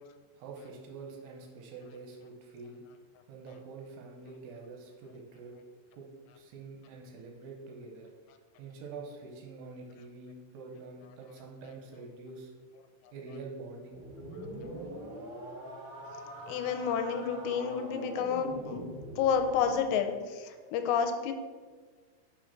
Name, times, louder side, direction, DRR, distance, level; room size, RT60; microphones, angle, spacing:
voice 1, 0.4-2.8 3.3-5.6 5.9-6.1 6.3-8.1 8.6-12.5 13.1-14.0, right 4 dB, 80° right, 1 dB, 2.8 m, -46 dB
sound 1, 13.9-19.9, right 1 dB, 55° right, 3.0 m, -43 dB
voice 2, 16.5-18.8 19.2-21.3, left 7 dB, 85° left, 7 dB, 2.7 m, -30 dB
6.0 x 5.0 x 5.7 m, 1.5 s
omnidirectional pair, 5.1 m